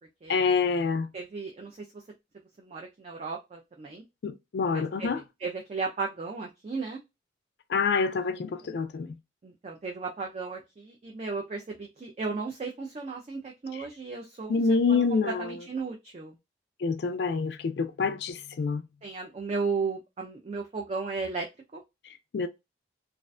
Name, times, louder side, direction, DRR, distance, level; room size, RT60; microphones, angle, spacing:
voice 1, 0.3-1.1 4.2-5.2 7.7-9.2 13.7-13.8 14.5-15.6 16.8-18.8 22.3-22.5, left 4 dB, 60° left, 0.3 m, -27 dB
voice 2, 1.1-1.8 2.6-4.0 4.7-5.1 5.4-7.0 9.4-14.6 14.9-16.3 19.0-21.5 21.7-21.8, right 4 dB, 35° right, 0.3 m, -35 dB
2.4 x 2.1 x 2.4 m
head